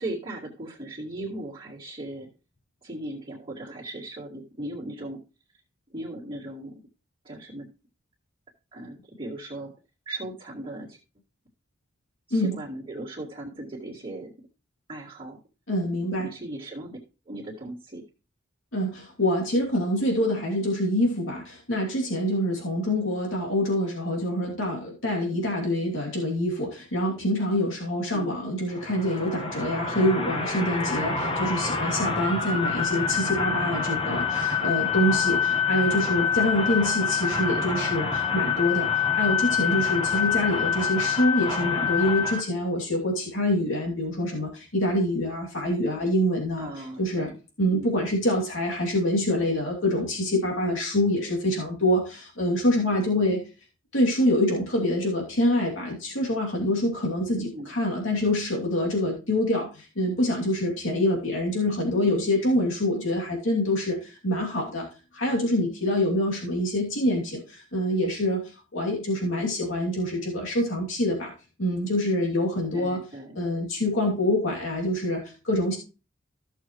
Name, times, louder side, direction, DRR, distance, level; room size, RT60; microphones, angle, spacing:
voice 1, 0.0-2.3 2.8-5.2 5.9-6.8 7.2-7.7 8.7-9.7 10.1-11.0 12.3-14.3 14.9-15.4 16.2-17.0 17.3-18.0 28.1-28.3 35.5-35.6 46.6-47.4 47.7-48.0 57.2-57.7 72.7-73.4, right 1 dB, 30° right, -7 dB, 2.1 m, -37 dB
voice 2, 15.7-16.3 18.7-46.7 47.0-47.3 47.6-53.4 53.9-64.9 65.1-68.4 68.7-71.3 71.6-73.0 73.3-75.8, left 1 dB, 90° left, -1 dB, 2.8 m, -26 dB
sound 1, 28.7-42.4, left 6 dB, 30° left, 1.4 m, -26 dB
15.0 x 6.5 x 3.1 m, 0.32 s
head